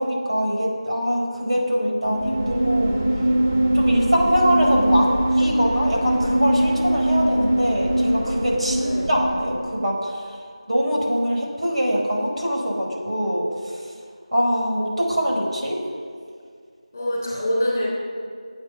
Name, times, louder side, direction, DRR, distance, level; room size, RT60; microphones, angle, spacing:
voice 1, 0.0-3.0 3.7-5.1 5.3-10.4 10.7-13.8 14.3-15.8, equal, 60° right, -1 dB, 4.6 m, -23 dB
sound 1, 2.0-9.9, right 1 dB, 15° right, 0.3 m, -22 dB
voice 2, 8.8-9.1 16.9-17.9, equal, 20° left, -5 dB, 3.1 m, -25 dB
22.0 x 8.9 x 6.1 m, 2.1 s
figure-of-eight pair, 180°, 4 cm